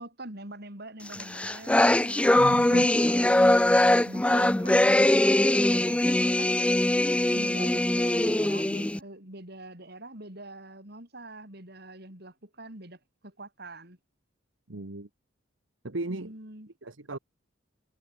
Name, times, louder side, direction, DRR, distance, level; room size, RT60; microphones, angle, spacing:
voice 1, 0.0-6.5 7.3-14.0 16.1-16.7, right 1 dB, 55° right, 5.9 m, -44 dB
sound 1, 1.1-9.0, left 1 dB, 5° left, 0.3 m, -22 dB
voice 2, 2.4-3.1 14.7-15.1 15.8-16.3 16.8-17.2, right 2 dB, 75° right, 1.5 m, -35 dB
head